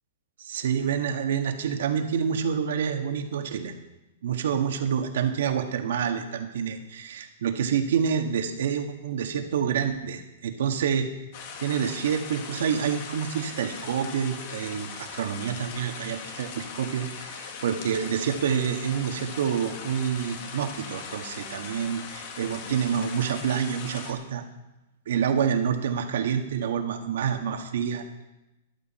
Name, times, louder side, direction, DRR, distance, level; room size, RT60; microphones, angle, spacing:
voice 1, 0.4-3.7 4.2-11.1 11.6-24.4 25.0-28.0, right 7 dB, 75° right, 5 dB, 1.7 m, -27 dB
sound 1, 11.3-24.1, left 6 dB, 50° left, 2.0 m, -40 dB
15.0 x 11.5 x 4.3 m, 0.96 s
hypercardioid pair, 145°, 0 cm